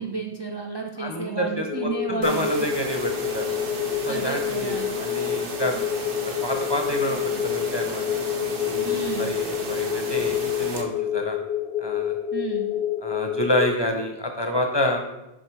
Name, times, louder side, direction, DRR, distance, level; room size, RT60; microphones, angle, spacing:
voice 1, 0.0-2.7 4.1-4.9 8.8-9.4 12.3-12.7, right 4 dB, 40° right, 1 dB, 0.3 m, -31 dB
voice 2, 1.0-3.5 4.1-5.7 6.2-8.0 8.7-11.4 11.8-12.1 13.0-15.0, left 1 dB, 30° left, 3 dB, 0.6 m, -28 dB
sound 1, 1.7-13.7, left 10 dB, 70° left, 0.8 m, -28 dB
sound 2, 2.2-10.8, right 3 dB, 55° right, 1.0 m, -34 dB
7.1 x 3.9 x 4.6 m, 0.92 s
omnidirectional pair, 1.1 m